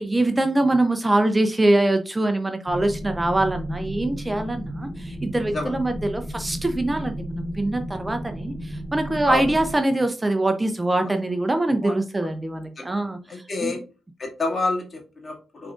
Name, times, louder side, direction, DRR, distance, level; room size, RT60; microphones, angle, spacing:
voice 1, 0.0-13.8, right 2 dB, 20° right, 7 dB, 0.6 m, -23 dB
sound 1, 2.7-9.7, equal, 10° left, 0.8 m, -33 dB
voice 2, 13.3-13.8 14.2-15.7, left 3 dB, 45° left, -1 dB, 2.1 m, -28 dB
5.8 x 3.7 x 2.4 m, 0.34 s
cardioid pair, 60°, 0 cm